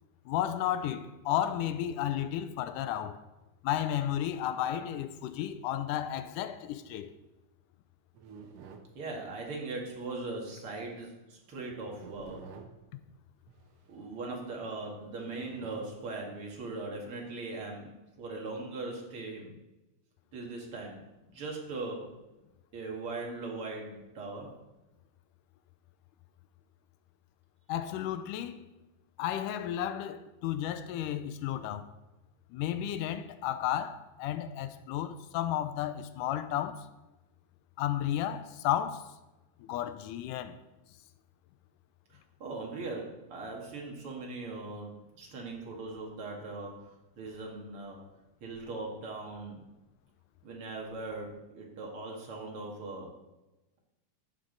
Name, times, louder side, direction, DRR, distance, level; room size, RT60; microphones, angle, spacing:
voice 1, 0.3-3.2 3.6-7.1 27.7-28.6 29.2-31.9 32.5-36.9 37.8-39.1 39.6-40.6, left 11 dB, 80° left, 2.1 m, -33 dB
sound 1, 8.1-8.9 10.7-10.9 11.9-12.8 13.5-14.1 15.1-15.9 16.8-17.6, right 6 dB, 70° right, 1.6 m, -50 dB
voice 2, 8.9-12.4 13.9-17.9 18.2-19.5 20.3-21.0 21.2-22.0 22.7-24.5 42.1-44.9 45.2-48.0 48.4-49.6 50.4-53.1, right 3 dB, 45° right, 2.5 m, -40 dB
13.0 x 7.4 x 3.9 m
omnidirectional pair, 3.8 m